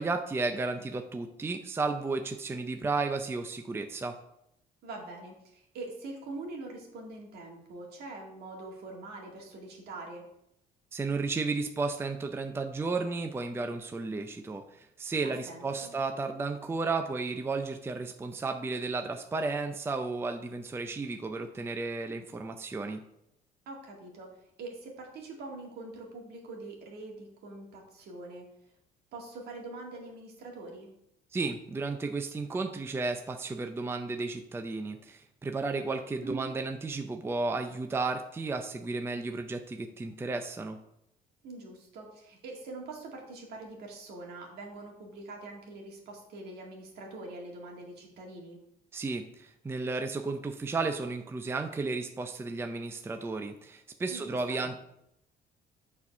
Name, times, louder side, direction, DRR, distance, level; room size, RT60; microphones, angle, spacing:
voice 1, 0.0-4.2 10.9-23.0 31.3-40.8 48.9-54.8, right 3 dB, 15° right, 5 dB, 0.5 m, -33 dB
voice 2, 4.8-10.2 15.2-15.9 23.7-24.3 24.6-28.5 29.1-30.9 36.2-36.5 41.4-48.6 54.1-54.8, right 2 dB, 70° right, 0 dB, 2.1 m, -44 dB
7.1 x 4.3 x 5.4 m, 0.79 s
cardioid pair, 110°, 17 cm